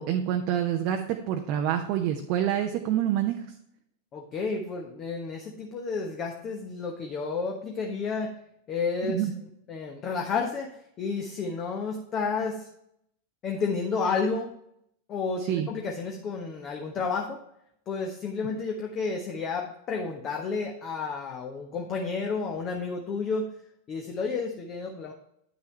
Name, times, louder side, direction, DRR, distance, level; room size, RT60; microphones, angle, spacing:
voice 1, 0.0-3.3 9.1-9.3 15.5-15.7, right 10 dB, 45° right, 3 dB, 0.8 m, -27 dB
voice 2, 4.1-8.3 8.7-9.3 9.7-10.7 11.0-12.7 13.4-14.5 15.1-17.4 17.9-23.5 23.9-25.1, left 4 dB, 30° left, 1 dB, 1.1 m, -31 dB
9.3 x 6.7 x 3.2 m, 0.74 s
figure-of-eight pair, 90°, 0 cm